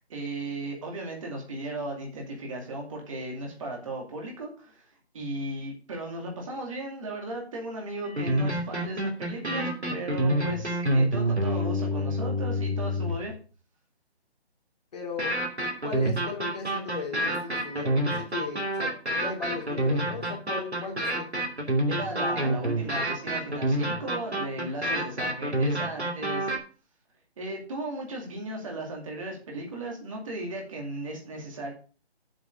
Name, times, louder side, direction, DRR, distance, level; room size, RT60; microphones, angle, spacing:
voice 1, 0.1-4.9 5.1-13.3 21.8-26.5 27.4-31.7, right 1 dB, 30° right, 0 dB, 2.4 m, -36 dB
sound 1, 8.0-13.3 15.2-26.6, right 1 dB, 85° right, 2.8 m, -28 dB
voice 2, 14.9-15.4 15.8-18.9 19.2-21.3, left 4 dB, 40° left, 0 dB, 2.8 m, -37 dB
7.5 x 6.1 x 6.6 m, 0.38 s
figure-of-eight pair, 150°, 32 cm